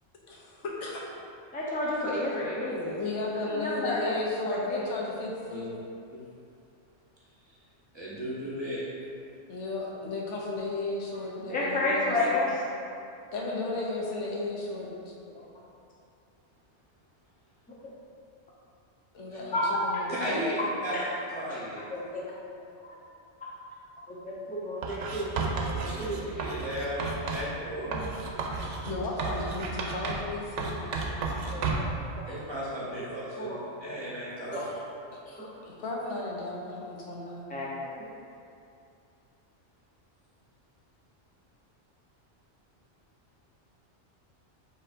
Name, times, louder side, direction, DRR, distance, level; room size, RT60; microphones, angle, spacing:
voice 1, 0.3-1.0 2.7-5.7 9.5-12.5 13.3-15.1 19.1-20.7 26.2-26.4 28.8-31.0 35.7-37.5, left 2 dB, 85° left, -3 dB, 1.1 m, -35 dB
voice 2, 1.5-2.9 3.5-4.2 4.4-4.8 11.5-12.5 19.5-20.0 20.9-21.1 21.9-22.2 24.1-26.3 27.9-28.1 28.4-28.5 31.5-32.2 33.1-34.0 34.5-34.7 35.3-35.5 37.5-38.0, left 1 dB, 10° left, -6 dB, 0.5 m, -31 dB
voice 3, 7.9-8.8 19.3-19.4 20.1-20.5 20.8-21.8 25.8-26.1 26.4-27.9 32.3-34.6, equal, 25° right, -8 dB, 0.8 m, -35 dB
Writing, 24.8-27.5 27.9-30.3 30.6-32.0, right 4 dB, 85° right, 0.9 m, -32 dB
6.7 x 3.1 x 2.5 m, 2.5 s
omnidirectional pair, 1.2 m